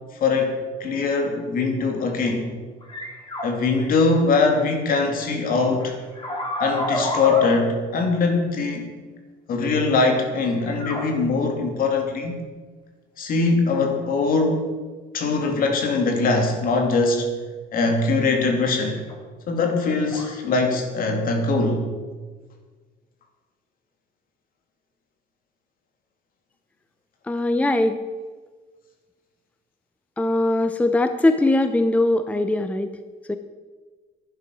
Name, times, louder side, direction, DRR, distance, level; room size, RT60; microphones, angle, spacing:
voice 1, 0.2-2.5 3.4-6.0 6.6-8.9 9.5-12.3 13.2-14.6 15.1-17.3 17.7-19.0 19.5-21.9, left 3 dB, 60° left, 4 dB, 2.6 m, -22 dB
sound 1, 2.8-3.5 3.8-3.9 5.8-7.5 10.5-11.0 19.1-19.2 20.1-20.3, left 1 dB, 30° left, 3.8 m, -28 dB
voice 2, 27.3-28.0 30.2-32.9 33.3-33.4, left 2 dB, 10° left, 10 dB, 0.6 m, -21 dB
11.0 x 10.5 x 6.2 m, 1.4 s
cardioid pair, 110°, 17 cm